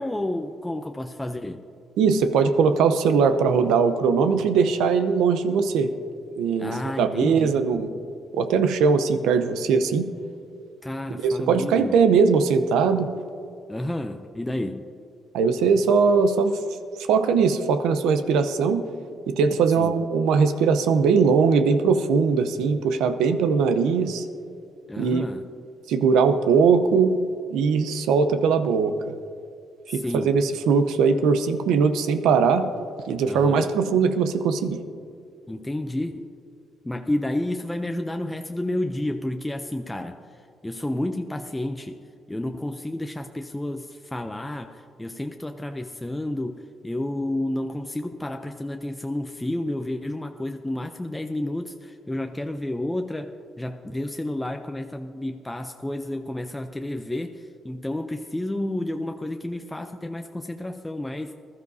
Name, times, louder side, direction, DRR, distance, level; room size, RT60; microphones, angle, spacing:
voice 1, 0.0-1.6 6.6-7.7 10.8-12.0 13.7-14.9 19.8-19.9 24.9-25.5 29.9-30.3 33.3-33.7 35.5-36.3 36.8-42.0 42.3-61.3, left 1 dB, 10° left, 5 dB, 0.5 m, -31 dB
voice 2, 2.0-5.9 6.4-7.9 8.3-10.1 11.2-13.1 15.3-16.6 17.0-18.8 19.3-24.2 25.0-25.3 25.9-27.2 27.5-28.9 29.9-32.7 33.1-34.8, right 5 dB, 90° right, 10 dB, 0.7 m, -20 dB
20.0 x 12.5 x 2.7 m, 2.4 s
cardioid pair, 90°, 0 cm